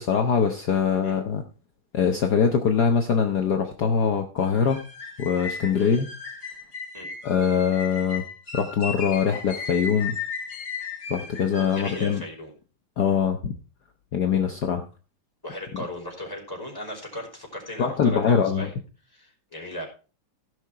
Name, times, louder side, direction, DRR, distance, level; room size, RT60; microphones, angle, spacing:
voice 1, 0.0-1.4 1.9-4.8 5.2-6.1 7.2-8.2 8.5-10.1 11.1-12.2 13.0-13.5 14.1-14.8 15.7-15.8 17.8-18.7, left 6 dB, 55° left, 5 dB, 1.4 m, -23 dB
sound 1, 4.4-12.2, left 5 dB, 40° left, 2.2 m, -36 dB
voice 2, 11.7-12.5 15.4-18.7 19.1-19.9, equal, 10° left, -2 dB, 4.9 m, -37 dB
16.0 x 6.3 x 4.8 m, 0.36 s
omnidirectional pair, 2.4 m